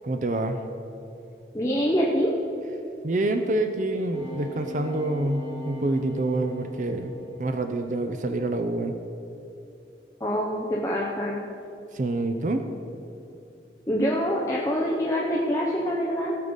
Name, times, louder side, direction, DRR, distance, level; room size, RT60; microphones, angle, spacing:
voice 1, 0.0-0.6 3.0-7.1 7.4-8.9 11.9-12.7, right 2 dB, 45° right, 7 dB, 0.6 m, -27 dB
voice 2, 1.5-2.3 10.2-11.4 13.9-16.4, equal, 15° left, -3 dB, 0.8 m, -25 dB
sound 1, 4.1-7.9 8.4-8.7, left 1 dB, 25° right, 2.2 m, -40 dB
17.5 x 6.7 x 5.3 m, 2.7 s
head